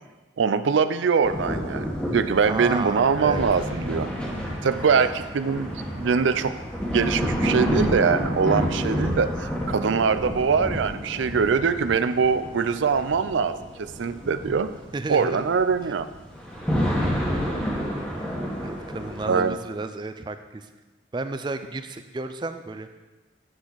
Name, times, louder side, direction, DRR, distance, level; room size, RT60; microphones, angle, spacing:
voice 1, 0.4-4.1 4.6-5.7 6.0-6.5 6.9-14.7 15.1-16.1 19.3-19.6, right 5 dB, 85° right, 12 dB, 0.4 m, -23 dB
sound 1, 1.2-19.5, equal, 5° left, 1.2 m, -29 dB
voice 2, 2.4-3.4 4.9-5.1 14.9-15.4 17.7-18.1 18.6-20.7 21.1-22.9, right 3 dB, 25° right, 9 dB, 0.3 m, -32 dB
8.7 x 6.3 x 3.9 m, 1.2 s
head